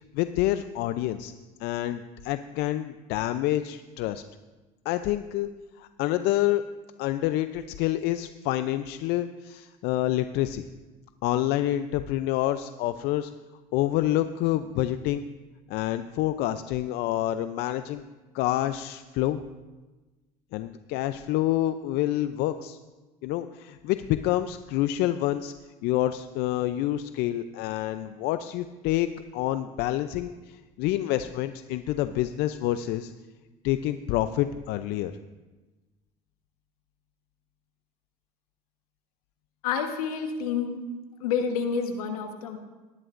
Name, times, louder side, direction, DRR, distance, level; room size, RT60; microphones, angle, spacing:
voice 1, 0.1-1.3 1.6-4.2 4.9-5.5 5.8-6.6 7.0-10.6 11.2-13.3 13.7-15.2 15.7-18.0 18.3-19.4 20.5-22.8 23.2-25.5 25.8-33.1 33.6-35.1, left 14 dB, 65° left, 11 dB, 0.6 m, -27 dB
voice 2, 39.6-40.8 41.2-42.6, left 6 dB, 85° left, 5 dB, 1.4 m, -28 dB
19.5 x 11.0 x 2.6 m, 1.2 s
hypercardioid pair, 75°, 18 cm